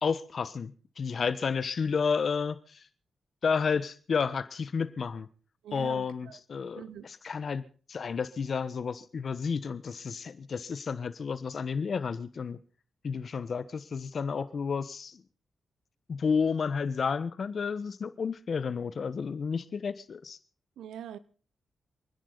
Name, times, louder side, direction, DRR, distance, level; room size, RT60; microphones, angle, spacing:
voice 1, 0.0-2.8 3.4-5.3 5.7-12.6 13.0-15.2 16.1-20.4, left 5 dB, 60° left, 1.2 m, -31 dB
voice 2, 5.6-6.4 6.8-7.1 20.8-21.2, right 9 dB, 80° right, 0.8 m, -43 dB
28.0 x 10.5 x 4.1 m
supercardioid pair, 45°, 0 cm